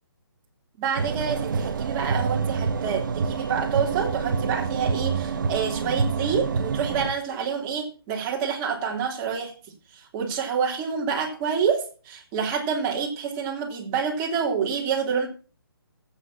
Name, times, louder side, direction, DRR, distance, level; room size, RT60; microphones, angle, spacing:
voice 1, 0.8-9.5 9.9-15.3, right 6 dB, 20° right, 0 dB, 3.2 m, -27 dB
sound 1, 1.0-7.1, right 5 dB, 55° right, 1.2 m, -27 dB
13.0 x 8.5 x 5.9 m, 0.38 s
figure-of-eight pair, 145°, 12 cm